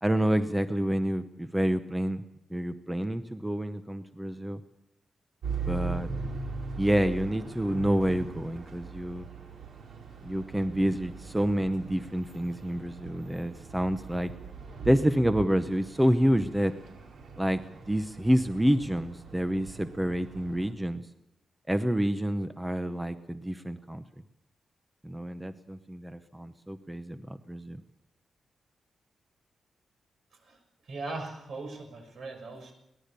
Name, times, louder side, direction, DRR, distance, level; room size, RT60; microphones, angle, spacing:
voice 1, 0.0-2.2 2.5-4.6 5.7-6.1 6.8-9.3 10.2-14.3 14.8-16.7 17.4-21.0 21.7-24.0 25.0-27.8, equal, 5° right, 9 dB, 0.8 m, -28 dB
sound 1, 5.4-20.7, right 4 dB, 85° right, 4.8 m, -40 dB
voice 2, 30.9-32.7, right 3 dB, 65° right, 5 dB, 6.2 m, -39 dB
23.5 x 19.0 x 6.9 m, 0.83 s
wide cardioid pair, 165°, 0 cm